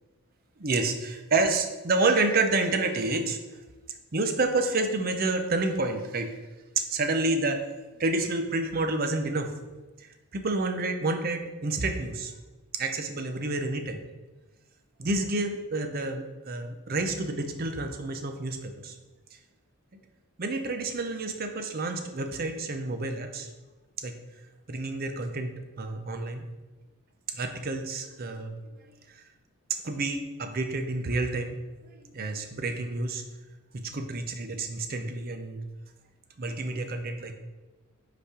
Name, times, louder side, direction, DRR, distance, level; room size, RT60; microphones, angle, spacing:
voice 1, 0.6-3.4 4.1-6.3 6.8-7.6 8.0-9.5 10.3-12.3 12.7-14.0 15.0-18.9 20.4-23.5 24.0-24.1 24.7-25.5 25.8-26.5 27.3-28.5 29.8-31.6 32.1-33.2 33.7-35.6 36.4-37.3, right 3 dB, 40° right, 6 dB, 0.6 m, -29 dB
5.5 x 4.1 x 4.8 m, 1.2 s
head